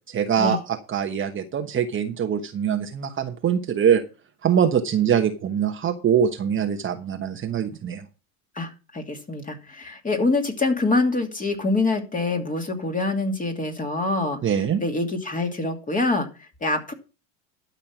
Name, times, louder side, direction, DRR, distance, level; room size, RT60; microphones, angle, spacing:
voice 1, 0.1-4.0 4.4-8.0 14.4-14.8, right 8 dB, 30° right, 5 dB, 1.2 m, -23 dB
voice 2, 8.6-14.4 14.8-16.3 16.6-16.9, left 2 dB, 20° left, 3 dB, 2.7 m, -25 dB
12.5 x 5.7 x 5.9 m, 0.32 s
hypercardioid pair, 95°, 41 cm